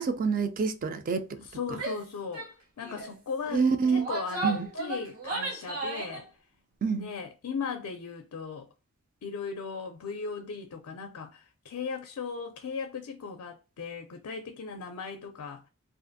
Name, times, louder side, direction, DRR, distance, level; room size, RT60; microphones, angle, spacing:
voice 1, 0.0-1.4 1.7-1.8 3.5-4.1 4.4-4.7 6.8-7.1, right 5 dB, 40° right, 0.3 m, -27 dB
voice 2, 1.5-2.5 2.8-6.3 7.0-8.7 9.2-15.6, left 5 dB, 90° left, 0.4 m, -37 dB
Female speech woman speaking / Yell, 1.7-2.0 2.3-2.5 2.8-3.1 3.8-6.2, right 3 dB, 80° right, 0.9 m, -34 dB
2.5 x 2.4 x 2.5 m
head